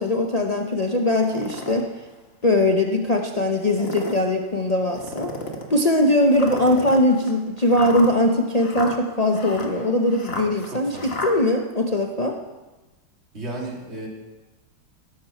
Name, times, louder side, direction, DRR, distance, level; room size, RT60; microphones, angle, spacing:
voice 1, 0.0-1.9 2.4-5.3 5.7-12.4, left 1 dB, 65° left, 2 dB, 0.4 m, -21 dB
sound 1, 1.1-1.8 2.4-2.5 3.6-4.2 4.9-5.7 6.3-11.3, left 2 dB, 35° left, 1.5 m, -33 dB
voice 2, 10.7-11.2 13.3-14.1, right 2 dB, 30° right, -3 dB, 3.4 m, -34 dB
18.0 x 11.5 x 4.5 m, 1.1 s
omnidirectional pair, 2.2 m